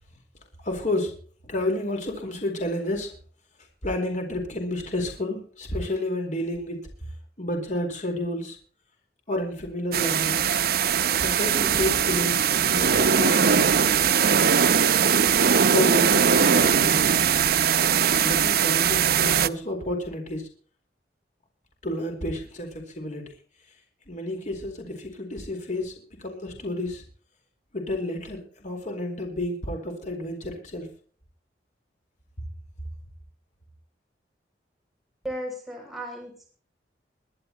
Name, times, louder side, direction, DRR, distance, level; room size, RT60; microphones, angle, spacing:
voice 1, 0.6-1.1 1.4-3.1 3.8-7.1 7.4-8.6 9.3-10.6 11.2-13.7 15.7-17.2 18.2-20.5 21.8-23.3 24.1-27.0 27.7-30.9, left 1 dB, 45° left, 3 dB, 4.2 m, -30 dB
sound 1, 9.9-19.5, right 7 dB, 60° right, 0.7 m, -20 dB
voice 2, 35.2-36.5, equal, ahead, -1 dB, 6.6 m, -35 dB
23.0 x 11.5 x 3.0 m, 0.43 s
head